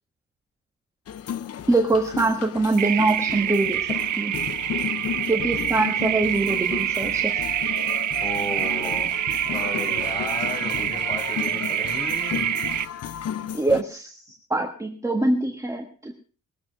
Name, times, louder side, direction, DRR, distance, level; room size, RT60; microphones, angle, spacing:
sound 1, 1.1-13.8, left 9 dB, 55° left, 0.7 m, -34 dB
voice 1, 1.7-4.3 5.3-7.5 13.5-14.2 14.5-16.1, right 2 dB, 10° right, 2 dB, 1.4 m, -24 dB
sound 2, 2.8-12.8, right 11 dB, 80° right, 0.8 m, -26 dB
voice 2, 8.2-9.2 9.4-12.5, left 1 dB, 20° left, -1 dB, 5.9 m, -34 dB
21.0 x 7.6 x 6.1 m, 0.41 s
wide cardioid pair, 155°, 29 cm